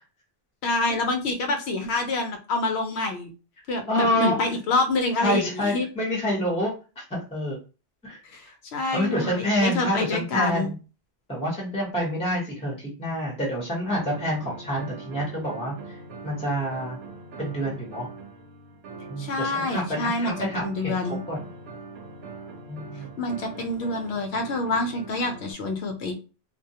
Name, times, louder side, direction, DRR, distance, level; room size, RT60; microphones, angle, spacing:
voice 1, 0.6-3.3 3.7-5.9 8.3-10.7 19.2-21.2 23.2-26.1, left 2 dB, 85° left, 4 dB, 0.8 m, -27 dB
voice 2, 3.9-4.6 5.2-7.6 8.0-8.2 8.4-8.5 8.9-10.7 11.3-16.0 16.2-17.0 17.4-18.1 19.1-20.9 21.3-21.4 22.7-23.2, equal, 5° left, -3 dB, 0.8 m, -27 dB
sound 1, 13.9-25.5, right 3 dB, 75° right, 0.8 m, -42 dB
2.2 x 2.1 x 2.7 m, 0.33 s
omnidirectional pair, 1.1 m